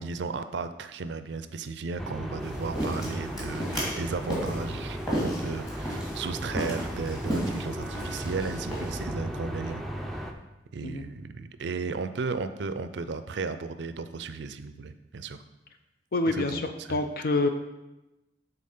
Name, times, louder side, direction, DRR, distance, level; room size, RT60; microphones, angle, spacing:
voice 1, 0.0-9.8 10.1-10.3 10.7-15.4 16.3-17.0, right 4 dB, 75° right, 11 dB, 0.5 m, -35 dB
sound 1, 2.0-10.3, equal, ahead, 0.5 m, -35 dB
sound 2, 2.4-9.0, equal, 25° left, 2.3 m, -34 dB
voice 2, 16.1-16.6 16.9-17.5, left 2 dB, 55° left, 7 dB, 0.5 m, -26 dB
7.5 x 4.0 x 5.4 m, 0.99 s
head